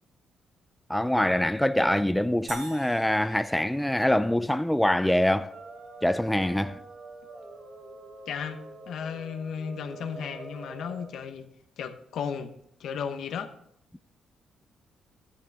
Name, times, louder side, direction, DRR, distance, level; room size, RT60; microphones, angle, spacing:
voice 1, 0.9-5.5 6.0-6.8, left 1 dB, 5° left, 0.4 m, -24 dB
sound 1, 2.5-4.9, right 3 dB, 85° right, 2.8 m, -45 dB
sound 2, 5.5-11.1, right 2 dB, 45° right, 3.5 m, -45 dB
voice 2, 8.3-8.6 8.9-11.5 11.8-12.5 12.8-13.5, left 7 dB, 70° left, 1.0 m, -34 dB
11.5 x 10.5 x 3.5 m
cardioid pair, 90°, 0 cm